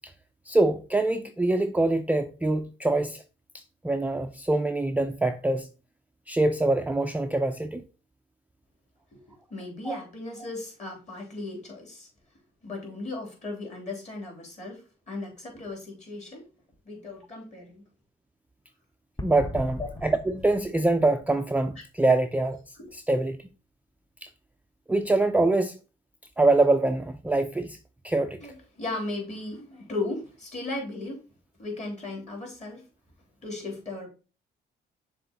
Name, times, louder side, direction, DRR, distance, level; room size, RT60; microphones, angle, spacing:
voice 1, 0.5-3.2 3.8-5.7 6.3-7.9 9.9-10.0 19.2-22.6 22.9-23.4 24.2-24.3 24.9-25.8 26.4-27.8 28.0-28.4, right 2 dB, 5° right, 0.4 m, -24 dB
voice 2, 9.1-12.1 12.6-16.5 16.9-17.8 22.8-22.9 28.4-31.3 31.6-32.8 33.4-34.1, left 2 dB, 35° left, 3.6 m, -36 dB
sound 1, 19.2-21.8, left 1 dB, 20° left, 0.9 m, -39 dB
6.6 x 3.6 x 4.0 m
cardioid pair, 90°, 20 cm